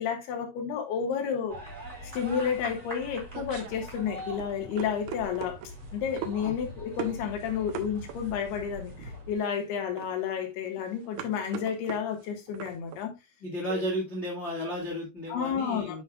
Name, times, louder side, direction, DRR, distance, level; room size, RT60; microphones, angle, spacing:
voice 1, 0.0-1.6 2.1-5.6 5.9-13.1 13.7-13.8 15.3-16.0, left 7 dB, 85° left, 3.5 m, -31 dB
sound 1, 1.5-9.4, equal, 10° right, 3.6 m, -43 dB
sound 2, 2.7-13.1, right 9 dB, 85° right, 3.0 m, -42 dB
voice 2, 13.4-16.0, equal, 30° left, 1.2 m, -33 dB
10.0 x 5.3 x 2.4 m
omnidirectional pair, 4.5 m